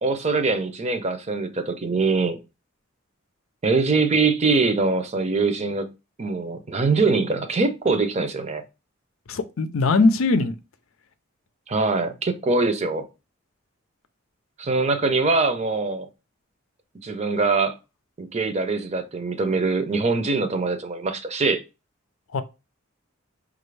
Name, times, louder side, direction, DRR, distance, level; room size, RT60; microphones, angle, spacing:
voice 1, 0.0-2.4 3.6-5.9 6.2-8.6 11.7-13.1 14.6-16.1 17.0-17.7 18.2-21.6, right 3 dB, 35° right, 0.6 m, -23 dB
voice 2, 9.3-10.5 22.3-22.4, left 3 dB, 90° left, 0.5 m, -20 dB
5.2 x 2.5 x 3.2 m
head